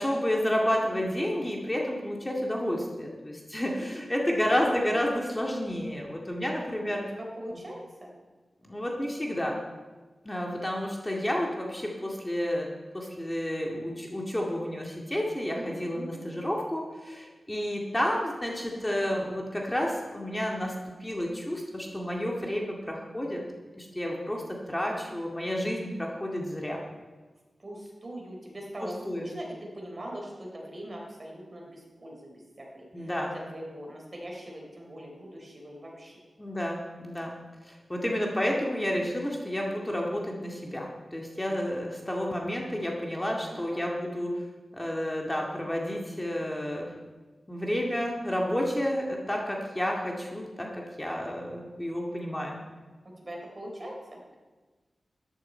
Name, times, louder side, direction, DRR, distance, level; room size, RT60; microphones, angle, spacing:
voice 1, 0.0-7.0 8.6-9.6 10.2-12.7 12.9-20.7 21.0-23.4 23.8-26.8 28.8-29.3 32.9-33.3 36.4-37.3 37.7-44.3 44.7-46.9 47.5-52.6, equal, 15° left, -1 dB, 2.1 m, -30 dB
voice 2, 7.1-8.1 15.5-16.2 18.7-19.1 27.6-36.2 43.5-43.8 53.2-54.2, right 1 dB, 40° right, -1 dB, 3.9 m, -42 dB
13.0 x 11.0 x 4.5 m, 1.3 s
cardioid pair, 60°, 0 cm